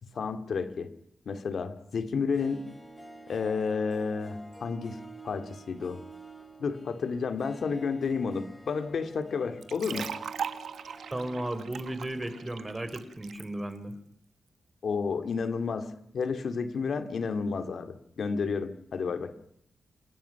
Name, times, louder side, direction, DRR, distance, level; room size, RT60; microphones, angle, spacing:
voice 1, 0.0-0.9 1.3-2.7 3.3-5.0 5.2-6.0 6.6-10.1 14.8-19.3, left 5 dB, 65° left, 9 dB, 2.3 m, -31 dB
Harp, 2.2-13.2 13.4-13.5, right 2 dB, 10° left, 3.6 m, -49 dB
sound 1, 9.6-13.4, right 7 dB, 80° right, 1.4 m, -39 dB
voice 2, 11.1-14.0, right 1 dB, 20° right, 10 dB, 3.6 m, -35 dB
29.5 x 18.5 x 5.9 m, 0.70 s
cardioid pair, 95°, 0 cm